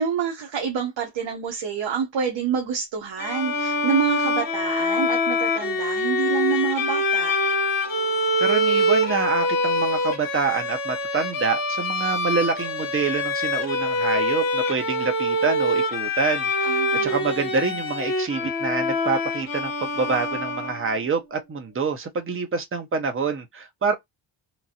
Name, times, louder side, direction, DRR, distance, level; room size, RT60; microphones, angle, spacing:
voice 1, 0.0-7.4 16.6-17.5, right 6 dB, 65° right, 0.9 m, -27 dB
Bowed string instrument, 3.2-21.0, left 1 dB, 45° left, 1.1 m, -25 dB
voice 2, 8.4-23.9, right 5 dB, 25° right, 0.7 m, -26 dB
3.0 x 2.5 x 2.7 m
wide cardioid pair, 135°, 47 cm